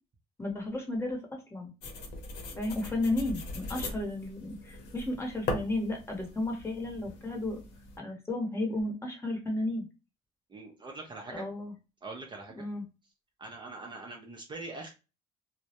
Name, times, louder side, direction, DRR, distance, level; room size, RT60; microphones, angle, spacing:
voice 1, 0.4-1.7 2.6-7.6 8.0-9.8 11.3-11.7 12.6-12.8, left 2 dB, 15° left, 1 dB, 0.8 m, -33 dB
sound 1, 1.8-8.0, left 2 dB, 80° left, 0.7 m, -40 dB
voice 2, 10.5-11.4 12.0-12.7 13.4-14.9, right 3 dB, 30° right, 1 dB, 0.5 m, -43 dB
2.2 x 2.0 x 2.7 m, 0.29 s
cardioid pair, 110°, 17 cm